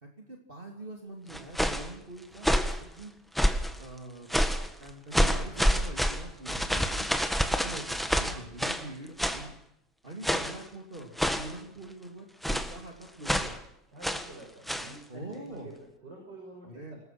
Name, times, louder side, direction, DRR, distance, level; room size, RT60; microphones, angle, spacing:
voice 1, 0.0-3.1 3.8-4.3 4.8-7.0 7.6-9.5 10.0-13.6 15.1-15.7 16.6-17.0, right 2 dB, 30° right, 1 dB, 3.2 m, -44 dB
sound 1, 1.3-1.9 2.4-2.8 3.3-3.8 4.3-4.7 5.1-8.9 9.2-9.5 10.2-10.6 11.2-11.6 12.4-12.8 13.2-13.6 14.0-14.3 14.7-14.9, equal, ahead, 1.5 m, -27 dB
voice 2, 13.9-17.0, right 2 dB, 80° right, 1 dB, 6.8 m, -47 dB
28.0 x 20.5 x 6.1 m, 0.76 s
omnidirectional pair, 1.9 m